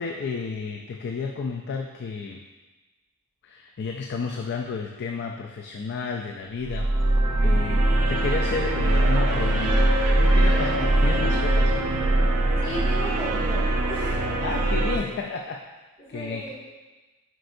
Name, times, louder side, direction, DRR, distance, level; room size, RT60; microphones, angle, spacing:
voice 1, 0.0-2.4 3.4-7.1 7.4-9.9 10.2-11.7 14.4-15.6 16.1-16.5, left 4 dB, 50° left, 2 dB, 0.4 m, -32 dB
sound 1, 6.6-15.0, right 1 dB, 80° right, 0.8 m, -22 dB
Laughter, 8.8-11.6 11.9-14.8, right 2 dB, 50° right, 1.0 m, -39 dB
voice 2, 12.6-14.3 15.0-15.1 16.1-16.5, equal, 25° left, -10 dB, 1.7 m, -35 dB
7.7 x 5.0 x 2.6 m, 1.2 s
head